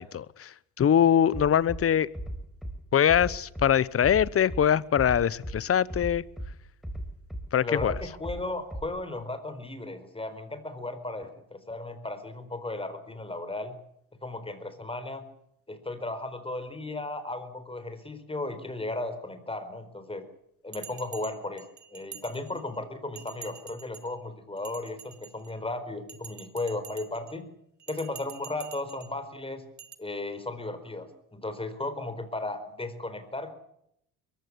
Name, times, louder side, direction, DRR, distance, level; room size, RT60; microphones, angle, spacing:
voice 1, 0.0-2.1 2.9-6.2 7.5-7.9, left 9 dB, 40° left, 1.0 m, -23 dB
Bass drum, 1.3-1.8 2.1-2.8 3.1-3.7 4.0-4.6 5.0-5.6 5.9-6.5 6.8-7.4 7.8-8.4 8.7-8.8, equal, ahead, 4.4 m, -36 dB
voice 2, 7.6-13.8 14.2-15.2 15.7-20.3 20.6-21.6 21.9-27.4 27.9-29.6 30.0-33.5, left 2 dB, 15° left, 4.3 m, -35 dB
Bell, 20.7-22.8 23.2-24.1 24.6-25.6 26.1-27.3 27.8-29.1 29.8-30.0, right 8 dB, 50° right, 1.9 m, -47 dB
22.5 x 15.0 x 10.0 m
supercardioid pair, 80°, 37 cm